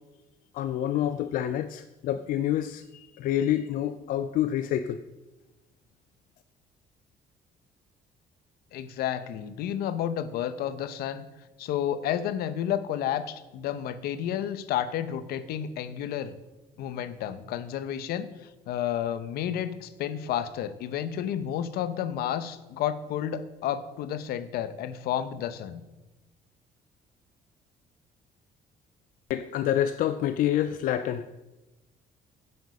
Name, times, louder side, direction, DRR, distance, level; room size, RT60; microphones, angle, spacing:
voice 1, 0.5-5.0 29.3-31.3, left 11 dB, 60° left, 0.4 m, -27 dB
voice 2, 8.7-11.3 11.6-16.3 16.8-18.3 18.7-25.8, left 10 dB, 80° left, 0.7 m, -31 dB
9.6 x 8.0 x 5.4 m
cardioid pair, 175°, 16 cm